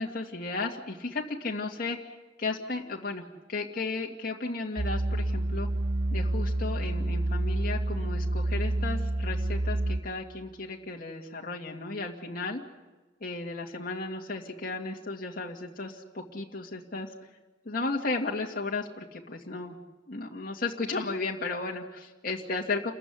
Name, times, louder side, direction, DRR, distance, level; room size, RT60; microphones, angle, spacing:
voice 1, 0.0-3.2 3.5-5.7 6.1-12.6 13.2-17.1 17.6-19.8 20.1-22.9, left 3 dB, 50° left, -1 dB, 2.4 m, -34 dB
sound 1, 4.8-10.0, right 1 dB, 80° right, 1.2 m, -28 dB
29.0 x 15.0 x 9.9 m, 1.2 s
head